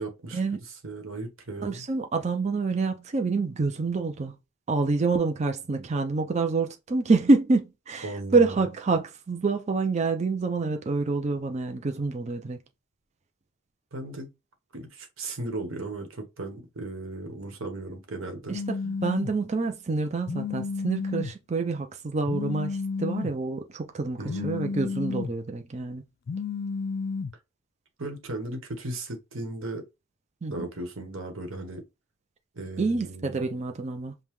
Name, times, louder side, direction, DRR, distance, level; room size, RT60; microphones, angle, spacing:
voice 1, 0.0-1.8 8.0-8.7 13.9-14.3 14.7-18.6 24.2-24.7 28.0-29.9 30.5-31.8 32.5-33.4, right 2 dB, 70° right, 1.2 m, -36 dB
voice 2, 1.6-4.3 4.7-12.6 18.5-26.0 30.4-30.6 32.8-34.1, right 3 dB, 35° right, 0.4 m, -27 dB
Telephone, 18.5-19.3 20.3-21.3 22.3-23.3 24.3-25.3 26.3-27.3, left 4 dB, 45° left, 0.3 m, -31 dB
5.3 x 2.2 x 3.1 m
head